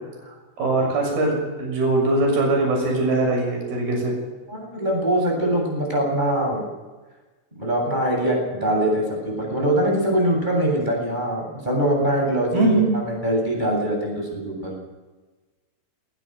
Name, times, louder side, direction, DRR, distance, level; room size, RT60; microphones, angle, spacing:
voice 1, 0.6-4.2 12.5-12.9, right 2 dB, 50° right, 0 dB, 8.5 m, -21 dB
voice 2, 4.5-6.7 7.6-14.7, right 1 dB, 10° right, -1 dB, 7.7 m, -23 dB
19.5 x 19.5 x 6.8 m, 1.2 s
omnidirectional pair, 5.6 m